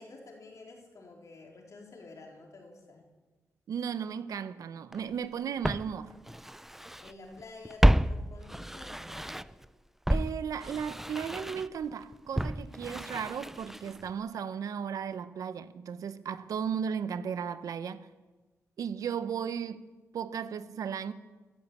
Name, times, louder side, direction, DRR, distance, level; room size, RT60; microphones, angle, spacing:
voice 1, 0.0-3.0 7.0-9.4, left 3 dB, 65° left, 4.0 m, -50 dB
voice 2, 3.7-6.1 10.1-18.1 18.8-19.9 20.1-21.1, right 7 dB, 85° right, 0.8 m, -35 dB
Walk footsteps, 4.9-5.0 5.6-7.1 7.4-9.7 10.1-14.1 14.4-14.5, right 1 dB, 5° right, 0.4 m, -30 dB
14.0 x 11.5 x 8.5 m
cardioid pair, 65°, 6 cm